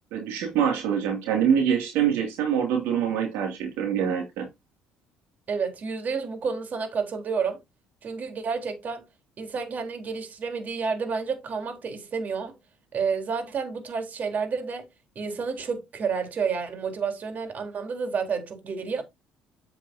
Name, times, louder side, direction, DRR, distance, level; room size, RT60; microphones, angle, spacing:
voice 1, 0.1-4.5, right 8 dB, 80° right, 2.6 m, -25 dB
voice 2, 5.5-7.6 8.0-9.0 9.4-12.6 12.9-14.9 15.2-19.0, right 5 dB, 50° right, 3.9 m, -30 dB
9.9 x 8.5 x 2.8 m
supercardioid pair, 75°, 4 cm